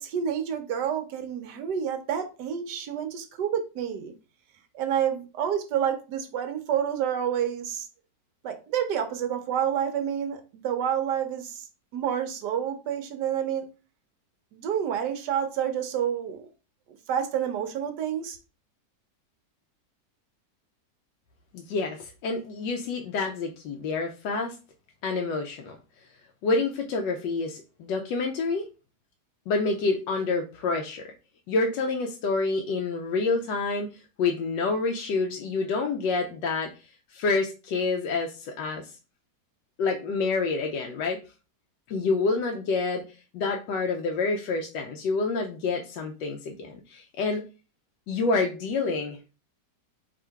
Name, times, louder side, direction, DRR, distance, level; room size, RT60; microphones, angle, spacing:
voice 1, 0.0-4.1 4.7-7.9 8.4-11.7 11.9-13.6 14.5-16.5 17.1-18.4, right 9 dB, 70° right, 8 dB, 1.3 m, -29 dB
voice 2, 21.5-24.6 25.0-25.8 26.4-28.7 29.5-31.1 31.5-33.9 34.2-36.7 37.1-38.9 39.8-41.2 41.9-43.0 43.3-47.4 48.1-49.3, left 3 dB, 85° left, 3 dB, 1.2 m, -28 dB
3.7 x 2.8 x 4.5 m, 0.33 s
omnidirectional pair, 1.9 m